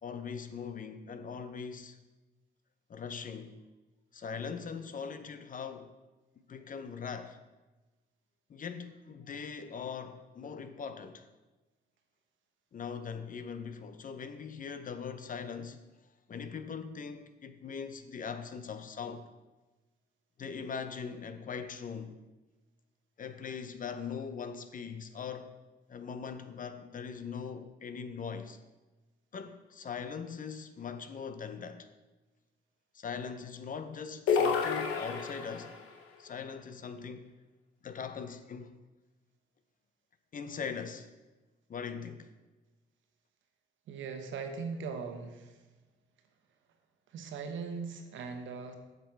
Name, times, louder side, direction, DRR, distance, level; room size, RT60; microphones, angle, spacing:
voice 1, 0.0-2.0 2.9-3.6 4.1-5.9 6.5-7.4 8.5-11.3 12.7-15.8 16.3-19.3 20.4-22.2 23.2-25.5 25.9-28.6 29.3-31.9 32.9-35.8 36.2-37.3 37.8-38.7 40.3-41.1 41.7-42.3, left 6 dB, 45° left, 0.7 m, -41 dB
sound 1, 34.3-35.8, left 5 dB, 90° left, 1.0 m, -29 dB
voice 2, 43.9-45.5 47.1-48.7, right 5 dB, 75° right, 1.1 m, -39 dB
7.5 x 6.8 x 4.6 m
cardioid pair, 90°, 20 cm